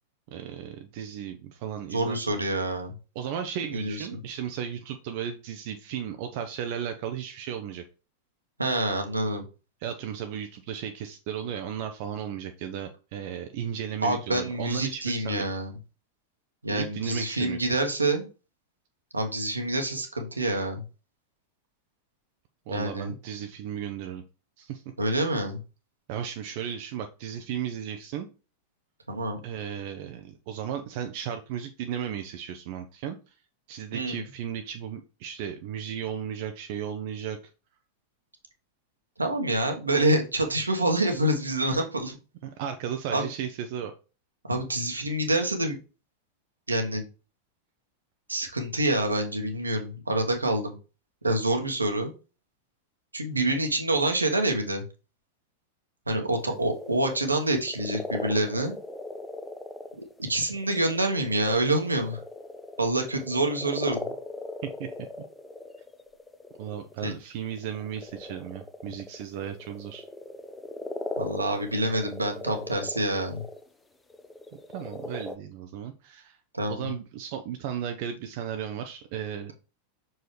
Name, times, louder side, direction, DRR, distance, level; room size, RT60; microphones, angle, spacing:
voice 1, 0.3-2.3 3.1-7.8 9.8-15.4 16.7-17.6 22.7-24.2 24.6-24.8 25.2-25.3 26.1-28.3 29.4-33.2 33.7-37.4 42.4-43.9 64.8-64.9 66.6-70.0 74.7-76.4 76.7-79.5, right 9 dB, 50° right, 6 dB, 0.6 m, -35 dB
voice 2, 1.9-2.9 3.7-4.1 8.6-9.4 14.0-15.7 16.6-18.3 19.1-20.8 22.7-23.1 25.0-25.6 29.1-29.4 33.9-34.2 39.2-42.2 43.1-43.3 44.5-45.8 46.7-47.0 48.3-50.7 51.2-52.1 53.1-54.8 56.1-58.7 60.2-62.2 62.8-64.1 67.0-67.1 71.2-73.4 76.5-76.9, right 1 dB, 80° right, 4 dB, 1.3 m, -27 dB
sound 1, 56.3-67.0 67.5-73.7 74.1-75.4, left 2 dB, 10° left, 0.7 m, -39 dB
6.2 x 4.7 x 3.2 m, 0.32 s
figure-of-eight pair, 90°, 0 cm